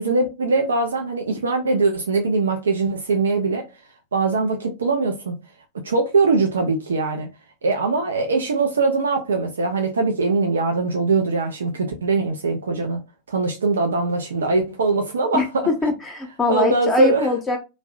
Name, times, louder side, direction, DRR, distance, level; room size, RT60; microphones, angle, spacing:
voice 1, 0.0-3.7 4.1-5.4 5.7-7.3 7.6-13.0 13.3-15.7 16.5-17.3, right 3 dB, 70° right, 0.4 m, -21 dB
voice 2, 15.3-17.6, left 3 dB, 20° left, 0.5 m, -22 dB
2.6 x 2.0 x 2.4 m
figure-of-eight pair, 90°, 0 cm